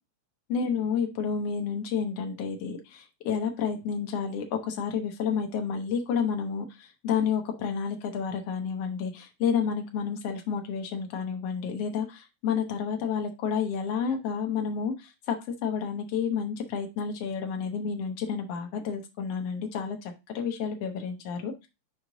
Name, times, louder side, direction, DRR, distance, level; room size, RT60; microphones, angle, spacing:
voice 1, 0.5-21.7, left 6 dB, 85° left, 4 dB, 1.4 m, -30 dB
6.4 x 4.8 x 3.8 m, 0.25 s
omnidirectional pair, 4.1 m